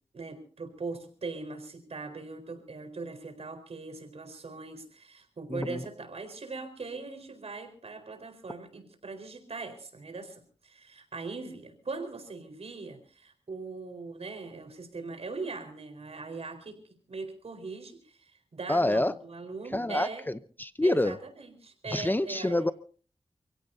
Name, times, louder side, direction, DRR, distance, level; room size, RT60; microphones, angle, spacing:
voice 1, 0.1-20.2 20.8-22.6, right 3 dB, 75° right, 6 dB, 4.4 m, -40 dB
voice 2, 5.5-5.8 18.7-19.1 19.7-21.2 21.9-22.7, left 1 dB, 20° left, 12 dB, 0.7 m, -27 dB
29.0 x 16.5 x 2.7 m, 0.42 s
wide cardioid pair, 75°, 11 cm